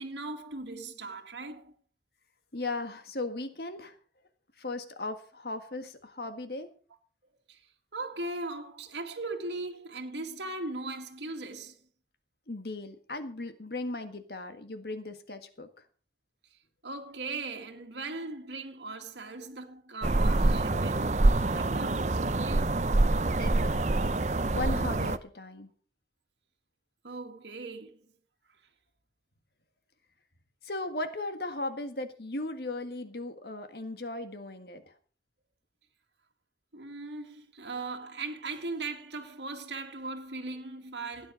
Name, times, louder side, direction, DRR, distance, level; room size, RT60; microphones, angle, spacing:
voice 1, 0.0-1.7 7.5-7.7 7.9-11.8 16.5-16.6 16.8-22.8 27.0-28.0 36.7-41.3, right 3 dB, 85° right, 1.9 m, -39 dB
voice 2, 2.5-4.0 4.6-6.7 12.5-15.8 23.4-24.1 24.5-25.7 30.6-34.9, left 2 dB, 65° left, 1.7 m, -37 dB
sound 1, 20.0-25.2, right 2 dB, 40° right, 0.6 m, -26 dB
16.5 x 9.8 x 5.2 m
head